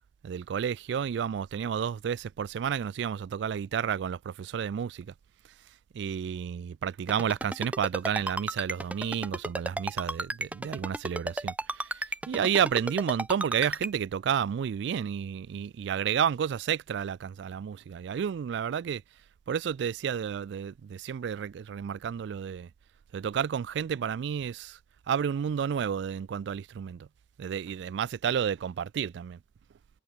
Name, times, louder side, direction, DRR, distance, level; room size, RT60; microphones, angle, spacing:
voice 1, 0.2-5.1 5.9-19.0 19.5-22.7 23.1-24.8 25.1-27.1 27.4-29.4, right 8 dB, 70° right, 0.3 m, -31 dB
Ringtone, 7.1-13.9, right 1 dB, 10° right, 0.6 m, -32 dB
head